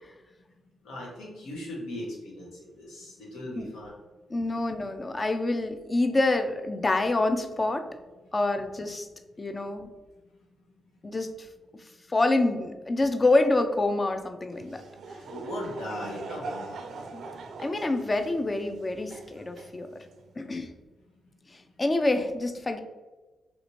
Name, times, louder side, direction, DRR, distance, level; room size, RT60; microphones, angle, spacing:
voice 1, 0.8-3.9 15.2-16.8, left 1 dB, 90° left, -3 dB, 1.0 m, -38 dB
voice 2, 4.3-7.9 8.3-9.1 9.4-9.9 11.0-11.5 12.1-14.8 17.1-17.2 17.6-20.0 20.4-20.7 21.5-22.8, left 2 dB, 30° left, 7 dB, 0.4 m, -27 dB
Laughter / Crowd, 14.5-20.3, right 3 dB, 70° right, 0.4 m, -42 dB
3.3 x 2.7 x 3.0 m, 1.2 s
cardioid pair, 65°, 0 cm